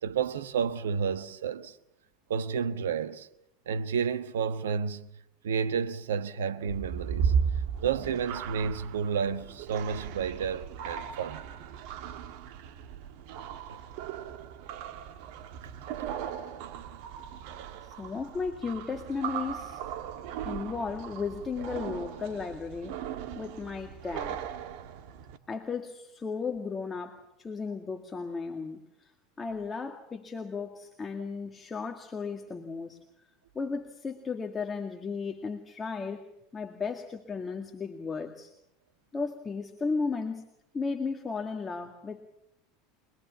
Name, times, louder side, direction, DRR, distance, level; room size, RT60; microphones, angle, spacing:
voice 1, 0.0-1.8 2.3-3.3 3.7-5.1 5.4-7.3 7.8-11.4 13.7-13.8 16.0-16.1, right 6 dB, 75° right, 1.3 m, -31 dB
sound 1, 6.6-25.4, right 7 dB, 60° right, 1.7 m, -36 dB
voice 2, 17.8-19.8 20.4-23.1 23.3-24.4 25.5-29.1 29.4-33.0 33.5-38.5 39.1-40.4 40.7-42.2, left 4 dB, 20° left, 2.1 m, -35 dB
24.5 x 21.0 x 7.2 m
hypercardioid pair, 80°, 0 cm